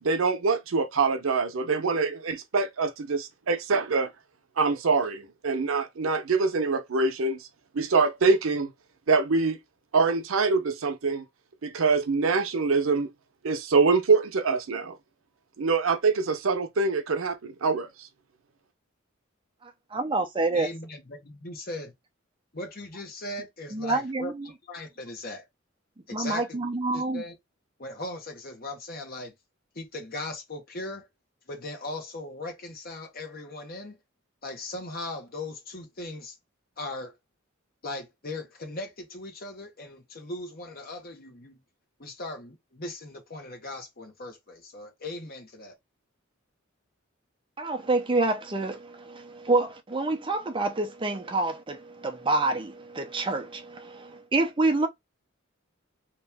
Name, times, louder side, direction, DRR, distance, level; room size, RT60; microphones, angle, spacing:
voice 1, 0.0-4.1 4.6-7.5 7.7-8.7 9.1-9.6 9.9-11.2 11.6-13.1 13.4-15.0 15.6-18.1, right 4 dB, 85° right, 0.6 m, -24 dB
voice 2, 19.9-20.7 23.7-24.5 26.1-27.2 47.6-54.9, right 2 dB, 25° right, 0.6 m, -27 dB
voice 3, 20.5-21.9 22.5-25.4 26.1-27.4 27.8-29.3 29.7-31.1 31.5-34.0 34.4-36.4 36.8-37.1 37.8-41.6 42.0-45.7, left 2 dB, 50° left, 1.1 m, -38 dB
3.0 x 2.7 x 3.4 m
head